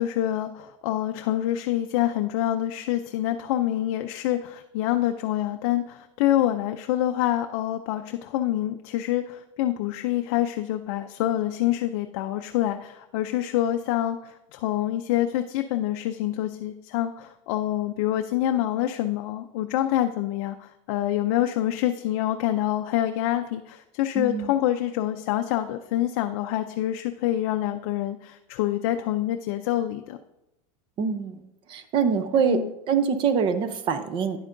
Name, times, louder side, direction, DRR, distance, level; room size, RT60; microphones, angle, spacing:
voice 1, 0.0-30.2 32.3-32.7, left 13 dB, 55° left, 6 dB, 0.5 m, -26 dB
voice 2, 24.2-24.5 31.0-32.6 32.9-34.5, right 6 dB, 30° right, 10 dB, 0.6 m, -25 dB
10.0 x 8.0 x 2.6 m, 0.88 s
supercardioid pair, 155°, 17 cm